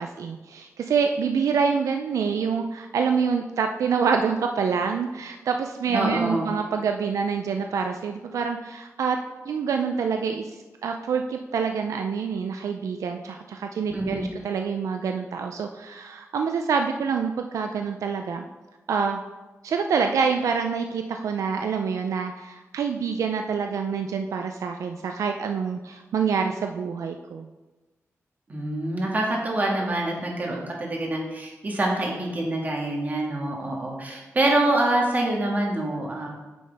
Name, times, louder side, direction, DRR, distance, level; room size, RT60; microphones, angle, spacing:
voice 1, 0.0-9.2 9.5-10.6 10.8-18.4 18.9-19.2 19.6-27.5, right 6 dB, 85° right, 5 dB, 0.5 m, -26 dB
voice 2, 5.9-6.5 13.9-14.3 28.5-36.4, right 1 dB, 30° right, -1 dB, 1.7 m, -26 dB
9.5 x 6.4 x 3.5 m, 1.2 s
wide cardioid pair, 160°, 5 cm